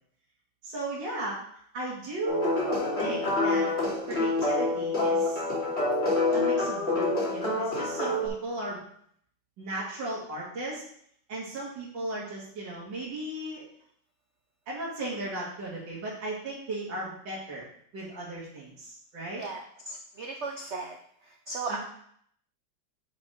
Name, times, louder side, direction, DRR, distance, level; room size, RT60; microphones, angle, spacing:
voice 1, 0.6-1.4 1.7-2.7 3.0-3.7 4.1-5.4 6.3-8.8 9.6-10.8 11.3-13.7 14.7-17.6 17.9-19.5 21.7-21.8, right 2 dB, 60° right, -7 dB, 2.7 m, -36 dB
sound 1, 2.3-8.3, left 2 dB, 30° left, 2.8 m, -27 dB
voice 2, 19.4-20.9 21.5-21.8, right 3 dB, 80° right, 3 dB, 0.6 m, -36 dB
6.8 x 6.0 x 5.0 m, 0.66 s
omnidirectional pair, 2.2 m